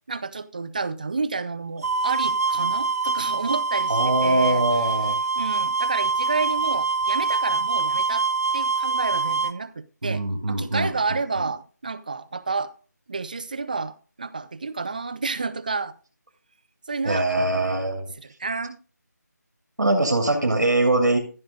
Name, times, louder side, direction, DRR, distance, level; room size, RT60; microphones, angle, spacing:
voice 1, 0.1-4.9 5.4-8.3 8.5-12.7 13.1-15.9 16.9-17.8 18.2-18.8, right 4 dB, 25° right, 0.5 m, -30 dB
sound 1, 1.8-9.5, right 4 dB, 55° right, 1.0 m, -24 dB
voice 2, 3.9-5.2 10.0-10.9 17.0-18.1 19.8-21.2, right 2 dB, 80° right, 2.9 m, -22 dB
15.0 x 6.4 x 3.8 m
figure-of-eight pair, 170°, 10 cm